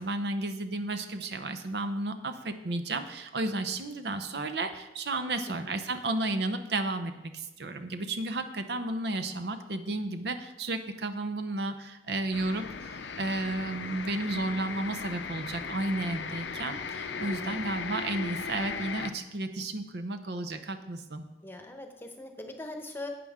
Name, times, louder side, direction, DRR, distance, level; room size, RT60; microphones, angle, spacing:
voice 1, 0.0-21.3, right 2 dB, 65° right, 8 dB, 0.7 m, -33 dB
voice 2, 5.3-5.7 17.1-17.7 21.4-23.1, left 2 dB, 10° left, 4 dB, 0.9 m, -42 dB
sound 1, 12.3-19.1, left 5 dB, 90° left, 0.7 m, -37 dB
12.0 x 8.6 x 3.6 m, 1.0 s
head